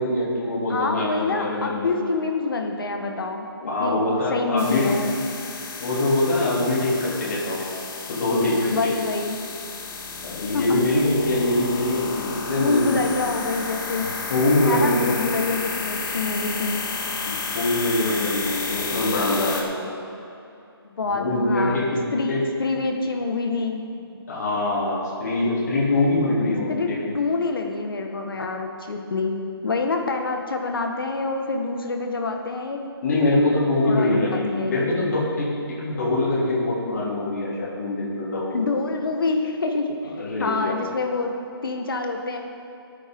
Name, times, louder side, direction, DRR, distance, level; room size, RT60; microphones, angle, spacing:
voice 1, 0.0-2.0 3.6-4.9 5.8-7.6 8.1-8.9 10.2-13.1 14.0-15.1 17.3-19.9 21.1-22.4 24.0-27.1 33.0-38.7 40.2-40.9, left 2 dB, 40° left, -7 dB, 3.1 m, -23 dB
voice 2, 0.7-4.0 4.3-5.1 8.7-9.4 10.5-10.8 12.5-14.1 14.6-16.8 20.8-23.8 26.7-32.8 33.2-33.5 33.8-35.1 38.5-41.3 41.6-42.4, left 3 dB, 60° left, 3 dB, 1.6 m, -26 dB
sound 1, 4.6-19.6, left 4 dB, 5° left, 0.3 m, -32 dB
18.0 x 8.7 x 3.8 m, 2.8 s
hypercardioid pair, 170°, 13 cm